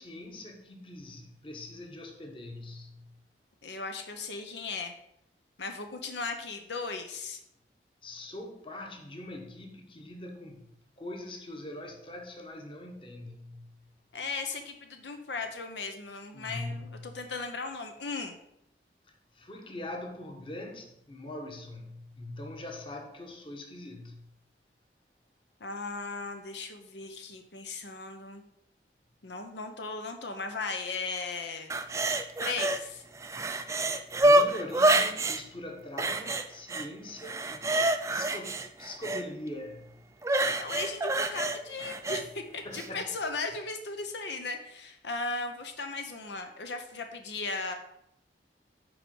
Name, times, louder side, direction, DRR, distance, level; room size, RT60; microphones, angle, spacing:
voice 1, 0.0-3.1 8.0-13.9 16.3-17.2 19.3-24.3 34.2-37.7 38.1-40.0 42.6-43.1, left 1 dB, 30° left, 1.2 m, -42 dB
voice 2, 3.6-4.9 5.6-7.4 14.1-18.4 25.6-28.4 29.2-31.7 32.4-33.0 40.6-47.7, left 3 dB, 75° left, 0.9 m, -37 dB
sound 1, 31.7-32.8 33.1-35.4 36.0-36.9 37.2-39.2 40.2-42.2 42.7-42.9, right 1 dB, 15° right, 0.4 m, -27 dB
8.2 x 4.8 x 5.4 m
head